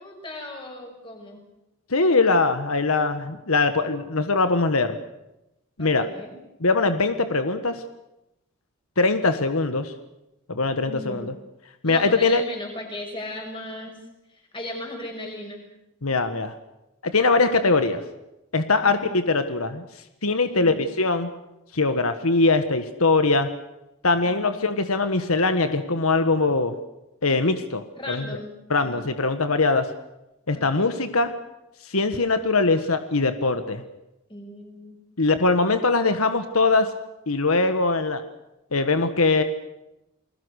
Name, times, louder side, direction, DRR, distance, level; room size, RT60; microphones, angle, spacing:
voice 1, 0.0-1.4 5.8-6.3 10.8-11.2 11.8-14.0 14.3-15.6 18.8-19.1 20.5-20.8 28.0-29.1 30.5-31.0 34.3-35.0, left 1 dB, 25° left, 2 dB, 6.5 m, -37 dB
voice 2, 1.9-5.0 5.8-6.1 6.6-7.8 9.0-9.9 10.5-11.3 11.8-12.4 16.0-16.5 17.0-18.0 18.5-19.8 20.2-21.3 21.7-23.5 24.0-26.7 27.2-28.2 28.7-29.9 30.5-31.3 31.9-33.8 35.2-36.9 37.3-38.2 38.7-39.4, left 3 dB, 85° left, 9 dB, 1.6 m, -22 dB
29.5 x 21.0 x 6.5 m, 0.89 s
head